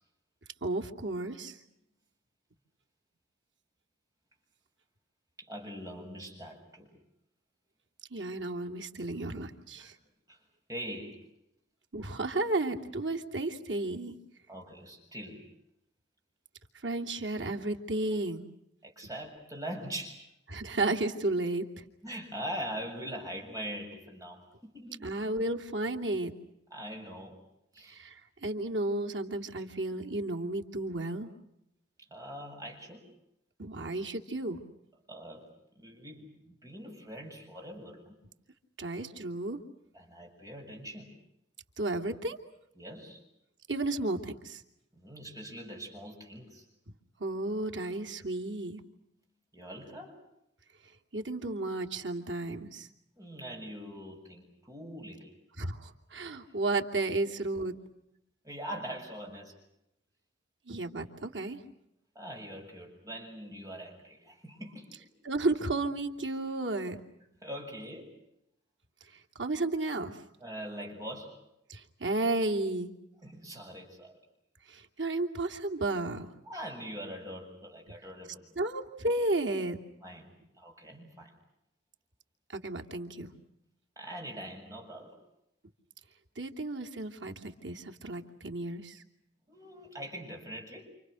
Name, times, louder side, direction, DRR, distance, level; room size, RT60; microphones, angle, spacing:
voice 1, 0.6-1.6 8.1-9.9 11.9-14.1 16.8-18.4 20.5-21.7 25.0-26.3 27.8-31.3 33.6-34.6 38.8-39.6 41.8-42.4 43.7-44.6 47.2-48.8 51.1-52.9 55.6-57.8 60.7-61.6 65.2-67.0 69.4-70.2 71.7-72.9 74.7-76.3 78.6-79.8 82.5-83.3 86.4-89.0, right 2 dB, 85° right, 4 dB, 3.0 m, -33 dB
voice 2, 5.4-7.0 9.8-9.9 10.3-10.4 10.7-11.3 14.5-15.4 18.8-20.3 22.0-25.0 26.7-27.4 27.7-28.0 32.1-33.1 35.1-35.5 35.8-38.2 39.9-41.2 42.8-43.2 44.9-46.7 49.5-50.2 53.2-55.3 58.4-59.6 62.1-64.9 67.4-68.2 70.4-71.4 73.2-74.2 76.5-78.5 80.0-81.3 84.0-85.2 89.5-90.8, equal, 20° right, 1 dB, 7.3 m, -42 dB
29.0 x 27.5 x 6.5 m, 0.80 s
head